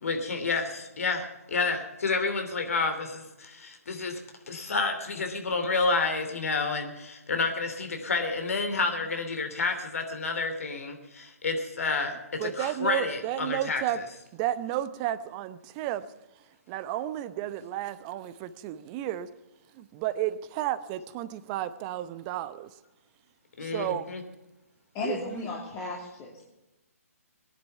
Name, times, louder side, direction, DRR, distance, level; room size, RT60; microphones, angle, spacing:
voice 1, 0.0-4.2 4.5-13.8 23.6-24.2, left 4 dB, 65° left, 6 dB, 2.9 m, -30 dB
voice 2, 12.4-14.0 14.3-16.1 16.3-19.3 19.7-22.8 23.6-24.1 25.0-25.5, right 12 dB, 30° right, 13 dB, 0.8 m, -32 dB
voice 3, 24.9-26.4, left 3 dB, 25° left, -3 dB, 2.5 m, -35 dB
19.5 x 10.5 x 5.7 m, 1.0 s
figure-of-eight pair, 135°, 8 cm